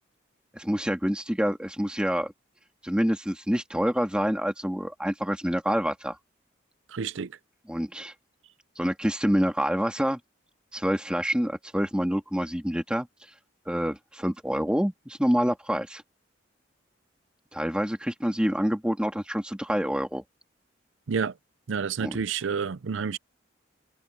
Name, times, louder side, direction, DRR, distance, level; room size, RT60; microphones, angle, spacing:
voice 1, 0.5-2.3 2.8-6.2 7.7-8.1 8.7-10.2 10.7-13.1 13.7-16.0 17.5-20.2 22.0-22.2, equal, 5° right, 1.7 m, -27 dB
voice 2, 6.9-7.3 21.1-21.3 21.7-23.2, right 6 dB, 75° right, 0.5 m, -29 dB
head